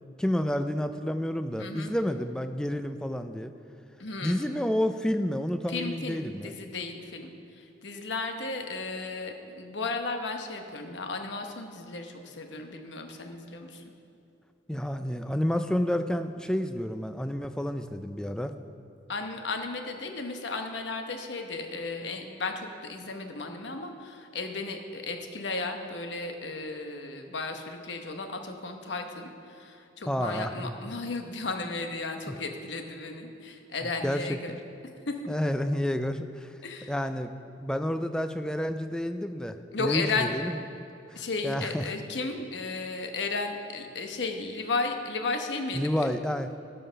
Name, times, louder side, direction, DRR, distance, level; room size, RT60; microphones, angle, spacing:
voice 1, 0.2-3.5 4.2-6.5 14.7-18.5 30.1-30.7 34.0-34.4 35.3-36.5 36.9-37.3 37.6-40.6 41.1-41.8 45.7-46.5, equal, 5° left, 9 dB, 0.3 m, -30 dB
voice 2, 1.6-1.9 4.0-4.5 5.7-13.8 19.1-34.6 35.1-35.2 36.6-36.9 39.7-40.3 41.2-46.1, left 3 dB, 80° left, 5 dB, 1.0 m, -34 dB
13.0 x 5.6 x 5.6 m, 2.6 s
head